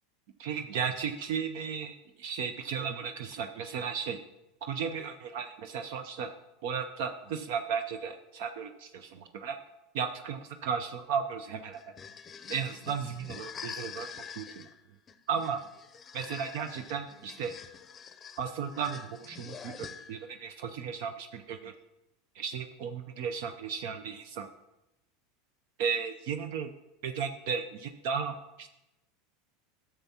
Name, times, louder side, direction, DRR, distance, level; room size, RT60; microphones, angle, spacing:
voice 1, 0.4-4.2 4.6-6.3 6.6-9.6 9.9-11.8 12.5-14.7 15.3-15.6 16.1-17.5 18.4-21.7 22.3-24.5 25.8-26.7 27.0-28.7, right 6 dB, 70° right, 7 dB, 0.5 m, -35 dB
sound 1, 11.7-20.4, left 7 dB, 30° left, 0.6 m, -46 dB
12.0 x 7.2 x 2.8 m, 0.94 s
hypercardioid pair, 105°, 0 cm